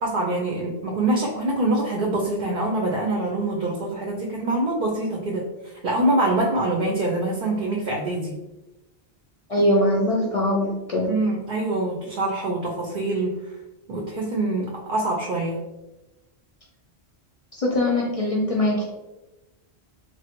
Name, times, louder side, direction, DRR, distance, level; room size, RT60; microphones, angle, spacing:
voice 1, 0.0-5.4 5.8-8.3 11.0-13.3 13.9-15.6, right 2 dB, 60° right, -2 dB, 0.6 m, -25 dB
voice 2, 9.5-11.1 17.6-18.9, left 1 dB, 50° left, -3 dB, 0.4 m, -22 dB
3.2 x 2.2 x 2.8 m, 1.0 s
omnidirectional pair, 1.1 m